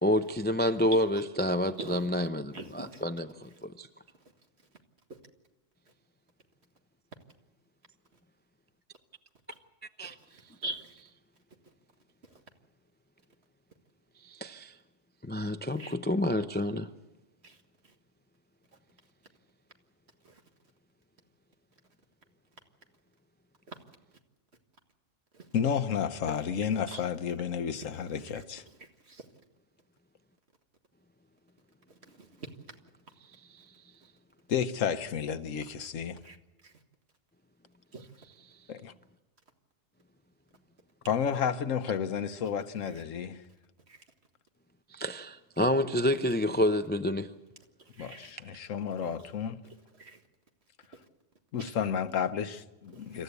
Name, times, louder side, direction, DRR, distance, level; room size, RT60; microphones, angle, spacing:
voice 1, 0.0-3.9 10.0-10.1 14.2-14.7 15.2-16.9 33.5-33.7 44.9-47.3, left 1 dB, 15° left, 0.4 m, -29 dB
voice 2, 2.5-3.0 10.3-10.9 15.8-15.9 17.4-17.6 20.2-20.4 23.7-23.8 25.3-25.4 26.9-27.0 28.4-28.5 28.8-29.2 32.1-32.5 36.2-36.4 36.6-36.7 37.9-38.0 43.9-44.0 47.9-48.3 49.6-50.2 51.6-51.7 52.9-53.2, right 2 dB, 55° right, 2.0 m, -43 dB
voice 3, 25.5-28.6 34.5-36.2 38.7-38.9 41.1-43.4 48.0-49.6 51.5-53.2, left 7 dB, 90° left, 1.3 m, -31 dB
26.5 x 14.5 x 8.2 m
omnidirectional pair, 1.3 m